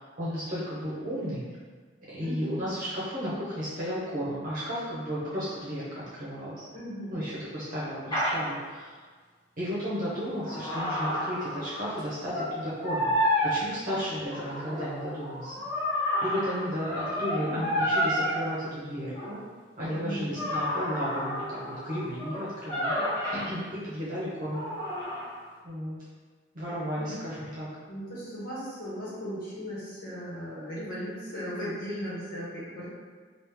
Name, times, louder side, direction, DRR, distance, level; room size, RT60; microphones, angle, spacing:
voice 1, 0.0-1.4 2.1-6.6 7.1-9.0 9.6-13.1 13.4-15.5 16.2-19.4 19.8-24.6 25.6-26.0 26.5-27.7, equal, 50° right, -9 dB, 0.8 m, -34 dB
voice 2, 2.2-2.7 6.7-7.2 17.3-17.6 20.0-20.4 26.8-27.2 27.9-32.9, equal, 55° left, -8 dB, 1.3 m, -37 dB
sound 1, 8.1-8.4 9.9-12.0 12.3-12.6 12.8-13.5 14.3-18.4 19.1-19.3 20.4-23.4 24.5-25.4, left 1 dB, 25° left, 1.3 m, -30 dB
3.1 x 2.4 x 3.5 m, 1.5 s
head